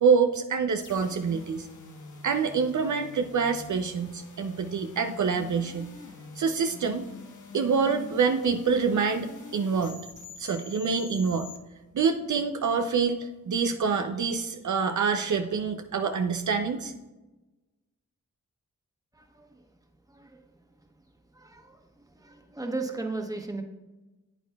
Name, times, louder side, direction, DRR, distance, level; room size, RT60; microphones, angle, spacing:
voice 1, 0.0-1.7 2.2-5.9 6.4-7.0 7.5-10.0 10.4-11.5 11.9-16.9, right 5 dB, 60° right, 6 dB, 0.6 m, -26 dB
sound 1, 0.8-11.6, left 4 dB, 60° left, 1.2 m, -46 dB
voice 2, 19.1-19.6 20.1-20.4 21.3-23.6, right 3 dB, 10° right, 3 dB, 1.3 m, -36 dB
9.0 x 8.4 x 2.3 m, 1.1 s
cardioid pair, 45°, 33 cm